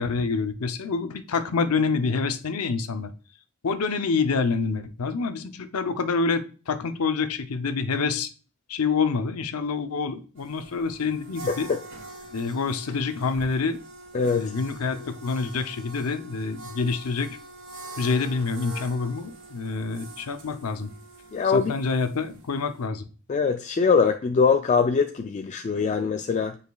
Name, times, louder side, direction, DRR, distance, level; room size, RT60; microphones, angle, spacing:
voice 1, 0.0-3.1 3.6-8.3 8.7-11.7 12.3-13.8 14.3-17.4 18.0-20.9 21.4-23.1, left 4 dB, 90° left, 0.6 m, -27 dB
sound 1, 10.4-22.8, right 2 dB, 60° right, 2.4 m, -44 dB
voice 2, 14.1-14.5 21.3-21.7 23.3-26.6, left 5 dB, 35° left, 0.3 m, -22 dB
9.2 x 4.9 x 2.3 m
head